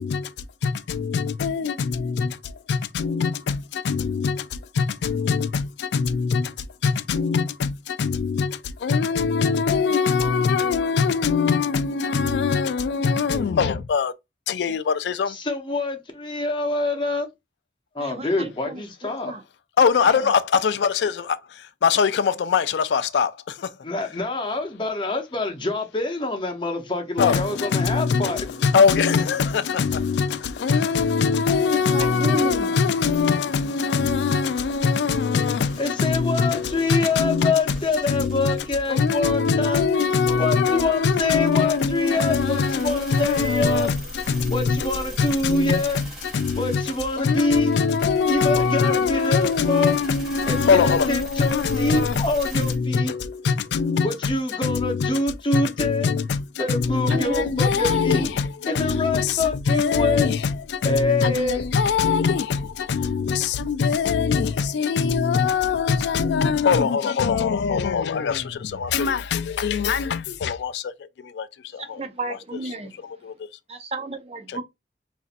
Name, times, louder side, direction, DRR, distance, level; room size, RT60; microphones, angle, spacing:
voice 1, 0.0-14.1 14.5-15.4 19.8-21.3 21.8-23.7 27.2-54.4 54.6-55.2 55.5-71.5 71.7-72.0 73.0-73.5 74.5-74.6, left 5 dB, 80° left, 0.3 m, -23 dB
voice 2, 15.3-17.3 17.9-19.3 23.8-28.4 35.8-39.8 40.4-43.9 44.5-46.0 46.5-47.7 48.3-50.0 50.4-53.1 54.0-56.1 56.6-58.3 58.7-60.3 60.8-61.6, left 2 dB, 30° left, 0.7 m, -25 dB
voice 3, 18.0-19.4 20.0-20.3 30.9-31.0 31.7-32.7 56.9-58.4 71.8-73.0 73.7-74.6, right 2 dB, 35° right, 0.5 m, -33 dB
sound 1, 33.1-52.8, equal, ahead, 1.2 m, -41 dB
4.1 x 2.5 x 2.5 m
head